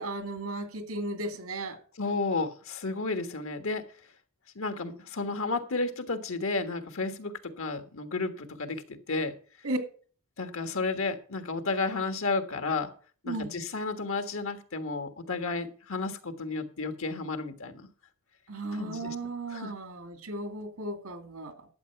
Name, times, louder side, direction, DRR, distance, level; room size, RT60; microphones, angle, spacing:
voice 1, 0.0-1.8 9.6-9.8 13.3-13.6 18.5-21.7, right 2 dB, 80° right, 2.3 m, -35 dB
voice 2, 2.0-3.8 4.5-9.3 10.4-12.9 13.2-17.9 18.8-19.1 19.5-19.7, left 3 dB, 65° left, 1.5 m, -32 dB
12.0 x 8.0 x 5.8 m
head